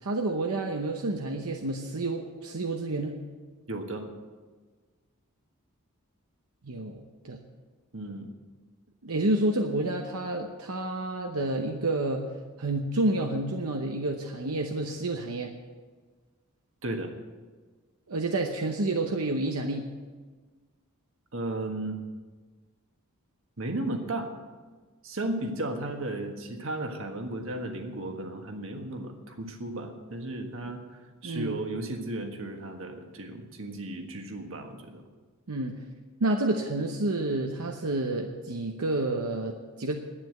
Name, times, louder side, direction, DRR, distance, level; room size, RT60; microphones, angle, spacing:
voice 1, 0.0-3.2 6.6-7.4 9.0-12.2 12.6-15.5 18.1-19.9 31.2-31.6 35.5-35.7 36.2-40.0, right 2 dB, 80° right, 3 dB, 0.9 m, -29 dB
voice 2, 3.7-4.1 7.9-8.3 16.8-17.1 21.3-22.0 23.6-24.3 25.0-30.8 31.2-35.0, right 2 dB, 60° right, 4 dB, 1.5 m, -34 dB
11.0 x 9.4 x 7.8 m, 1.4 s
head